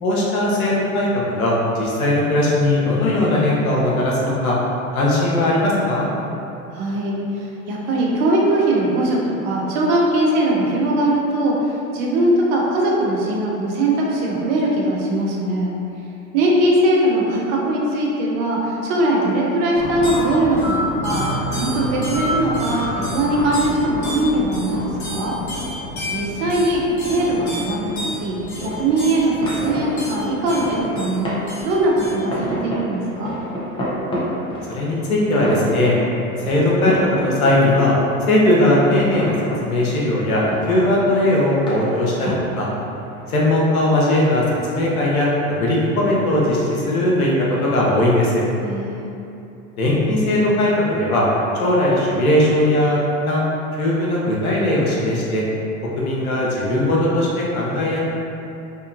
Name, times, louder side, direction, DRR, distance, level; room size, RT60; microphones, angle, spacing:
voice 1, 0.0-4.6 4.9-6.1 34.7-35.9 36.5-37.9 38.3-39.3 39.6-42.7 43.3-47.3 47.6-48.4 49.8-51.3 51.5-53.0 53.3-53.4 53.8-55.4 56.0-58.0, left 1 dB, 85° left, -5 dB, 0.8 m, -19 dB
voice 2, 6.7-15.7 16.3-21.2 21.5-25.4 26.1-26.8 27.1-31.4 31.6-33.4 48.6-49.1, right 1 dB, 50° right, -3 dB, 0.7 m, -20 dB
sound 1, 19.7-32.1, equal, 40° left, 1.0 m, -28 dB
sound 2, 26.9-45.9, equal, 15° left, 0.6 m, -31 dB
2.8 x 2.3 x 2.5 m, 2.8 s
hypercardioid pair, 90°, 41 cm